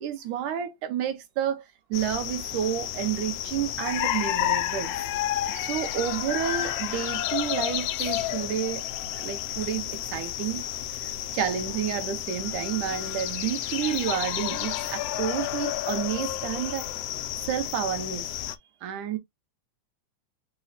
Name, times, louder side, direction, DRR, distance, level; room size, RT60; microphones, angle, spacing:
voice 1, 0.0-1.6 1.9-4.9 5.5-8.8 9.2-10.6 10.9-16.9 17.4-18.3 18.8-19.2, right 9 dB, 80° right, 2.5 m, -30 dB
sound 1, 1.9-18.6, left 13 dB, 90° left, 1.4 m, -31 dB
5.4 x 2.1 x 4.0 m
omnidirectional pair, 3.5 m